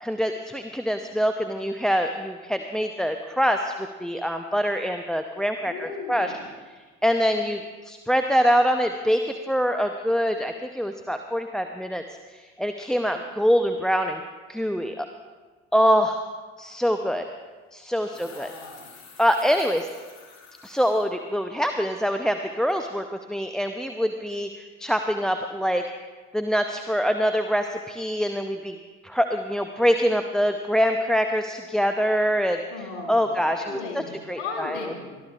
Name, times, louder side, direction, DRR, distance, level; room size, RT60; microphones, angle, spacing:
voice 1, 0.0-6.3 7.0-12.0 12.3-14.2 14.5-15.1 15.7-16.2 16.6-17.3 17.7-18.5 19.2-19.9 20.6-25.8 26.3-28.8 29.0-32.6 33.1-33.8 34.3-34.8, equal, ahead, 6 dB, 0.7 m, -24 dB
voice 2, 5.6-6.5 18.1-18.9 32.7-35.2, left 4 dB, 75° left, 0 dB, 2.8 m, -37 dB
sound 1, 16.6-16.7 17.7-21.1 21.5-21.6 22.1-22.4 22.7-22.8, left 5 dB, 45° left, 2.9 m, -50 dB
23.5 x 13.5 x 2.5 m, 1.4 s
figure-of-eight pair, 50°, 37 cm